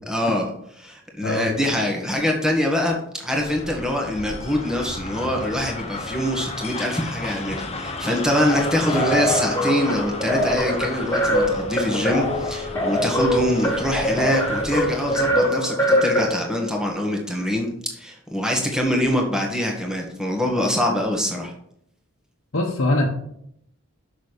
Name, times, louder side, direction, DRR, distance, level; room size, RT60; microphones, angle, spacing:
voice 1, 0.1-0.5 0.8-21.5, left 1 dB, 5° right, 0 dB, 1.7 m, -24 dB
sound 1, 3.3-15.4, left 3 dB, 30° left, 0.8 m, -33 dB
sound 2, 8.5-16.7, equal, 15° left, 1.5 m, -23 dB
voice 2, 22.5-23.1, left 1 dB, 60° left, -3 dB, 1.2 m, -21 dB
6.7 x 6.3 x 5.2 m, 0.72 s
head